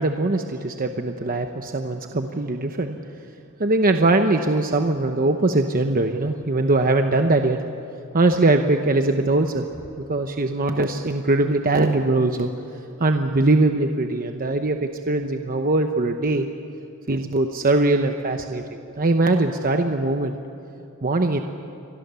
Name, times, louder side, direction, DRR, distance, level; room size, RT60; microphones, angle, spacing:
voice 1, 0.0-3.0 3.6-7.6 8.1-9.7 10.1-12.5 13.0-16.5 17.1-20.3 21.0-21.4, right 2 dB, 40° right, 5 dB, 1.0 m, -21 dB
29.5 x 23.5 x 7.0 m, 2.8 s
head